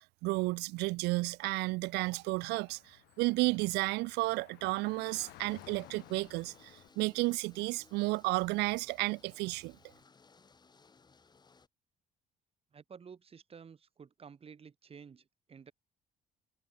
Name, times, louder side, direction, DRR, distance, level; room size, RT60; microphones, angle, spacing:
voice 1, 0.2-9.7, right 23 dB, 90° right, 0.4 m, -32 dB
Car / Traffic noise roadway noise, 1.8-6.9, left 19 dB, 85° left, 6.2 m, -57 dB
sound 1, 5.1-11.7, left 4 dB, 25° left, 3.0 m, -62 dB
voice 2, 12.7-15.7, right 6 dB, 35° right, 3.4 m, -52 dB
cardioid pair, 110°, 17 cm